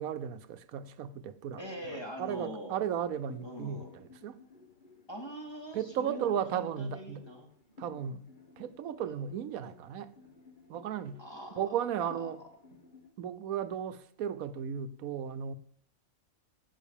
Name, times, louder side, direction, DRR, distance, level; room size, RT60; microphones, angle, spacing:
voice 1, 0.0-1.7 2.2-4.4 5.7-7.2 7.8-8.2 8.6-10.1 10.7-11.2 11.6-12.4 13.2-15.5, right 9 dB, 85° right, 1.2 m, -35 dB
sound 1, 1.5-13.1, left 4 dB, 35° left, 1.6 m, -57 dB
voice 2, 1.6-2.8 3.4-3.9 5.1-7.5 11.2-12.3, equal, 20° left, 2.5 m, -43 dB
17.0 x 5.7 x 7.1 m
omnidirectional pair, 1.4 m